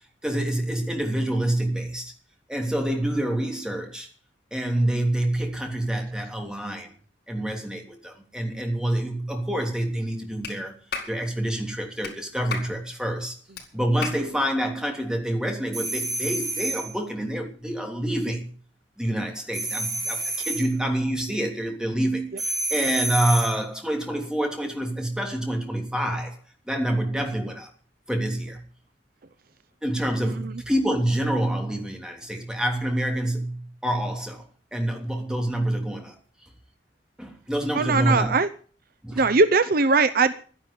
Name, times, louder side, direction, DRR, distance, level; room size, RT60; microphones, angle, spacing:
voice 1, 0.2-2.1 2.5-4.1 4.5-6.9 7.3-10.8 11.1-13.3 13.7-18.5 19.0-26.4 26.7-27.7 28.1-28.6 29.8-34.4 34.7-36.1 37.2-38.3 39.0-39.2, right 1 dB, 5° right, 3 dB, 3.2 m, -27 dB
Clapping, 10.4-10.6 10.9-11.1 12.0-12.1 12.5-12.7 13.6-13.7 14.0-14.2, left 5 dB, 60° left, 4.8 m, -32 dB
sound 1, 15.7-16.9 19.5-20.7 22.4-23.6, right 3 dB, 20° right, 4.2 m, -29 dB
voice 2, 30.2-30.6 37.7-38.5 39.2-40.3, right 4 dB, 55° right, 13 dB, 0.8 m, -20 dB
12.0 x 11.0 x 8.5 m, 0.42 s
head